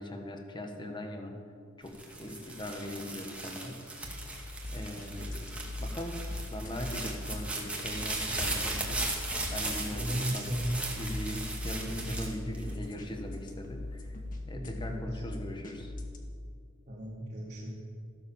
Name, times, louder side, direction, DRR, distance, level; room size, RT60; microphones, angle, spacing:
voice 1, 0.0-1.4 1.8-4.2 4.7-6.2 6.5-9.1 9.5-10.5 10.9-14.1 14.5-15.9, left 1 dB, 20° left, 4 dB, 1.5 m, -40 dB
sound 1, 1.9-13.2 13.7-14.3, right 2 dB, 5° right, 2.1 m, -37 dB
sound 2, 4.0-16.2, left 2 dB, 40° left, 1.7 m, -40 dB
voice 2, 9.9-10.8 11.8-12.4 14.5-15.2 16.9-17.7, equal, 35° right, -7 dB, 2.4 m, -36 dB
14.5 x 12.0 x 7.3 m, 2.3 s
head